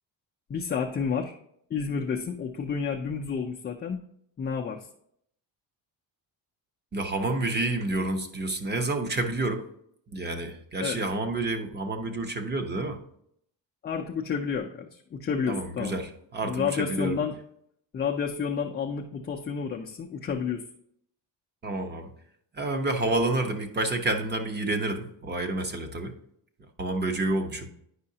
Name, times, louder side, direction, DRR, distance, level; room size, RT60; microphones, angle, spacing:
voice 1, 0.5-1.4 1.7-4.0 4.4-4.9 10.8-11.0 13.8-15.9 16.4-17.3 17.9-20.6, left 6 dB, 25° left, 0 dB, 0.4 m, -30 dB
voice 2, 6.9-9.6 10.1-13.0 15.5-17.2 21.6-22.1 22.5-26.1 26.8-27.7, right 2 dB, 25° right, 6 dB, 0.8 m, -29 dB
9.6 x 5.6 x 2.8 m, 0.70 s
cardioid pair, 155°, 43 cm